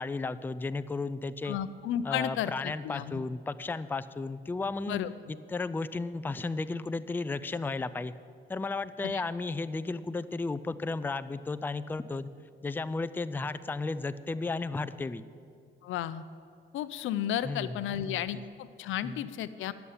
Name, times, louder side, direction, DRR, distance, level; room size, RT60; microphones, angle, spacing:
voice 1, 0.0-1.6 2.0-5.0 5.3-8.1 8.5-12.3 12.6-15.2 17.4-18.4 19.0-19.3, left 3 dB, 10° left, 13 dB, 0.4 m, -34 dB
voice 2, 1.4-3.2 4.9-5.1 9.0-9.2 15.8-16.2 16.7-19.7, left 11 dB, 85° left, 14 dB, 0.6 m, -33 dB
11.0 x 6.9 x 8.6 m, 2.3 s
cardioid pair, 90°, 20 cm